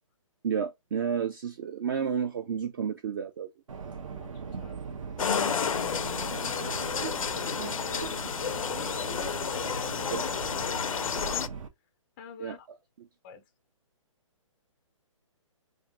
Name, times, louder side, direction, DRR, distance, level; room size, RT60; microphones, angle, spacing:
voice 1, 0.4-3.5 10.1-10.2 12.4-12.6, right 7 dB, 40° right, 0.5 m, -31 dB
Subway metro underground, 3.7-11.7, right 6 dB, 75° right, 1.0 m, -39 dB
voice 2, 4.1-4.8 5.4-10.3 10.6-11.5 12.2-12.7 13.2-13.4, left 7 dB, 20° left, 0.4 m, -45 dB
sound 1, 5.2-11.5, left 7 dB, 85° left, 0.5 m, -31 dB
3.5 x 2.5 x 3.8 m
hypercardioid pair, 150°, 17 cm